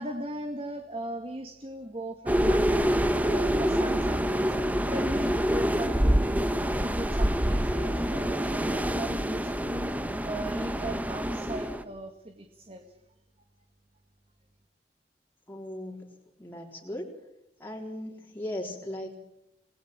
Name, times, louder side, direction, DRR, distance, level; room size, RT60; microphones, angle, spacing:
voice 1, 0.0-4.5 4.9-9.9 10.2-12.9, right 1 dB, 35° right, 6 dB, 2.0 m, -38 dB
sound 1, 2.3-11.8, equal, 10° right, 1.4 m, -26 dB
voice 2, 15.5-16.1 16.4-17.1 17.6-19.1, left 1 dB, 10° left, -1 dB, 3.8 m, -37 dB
27.0 x 20.0 x 8.9 m, 0.84 s
head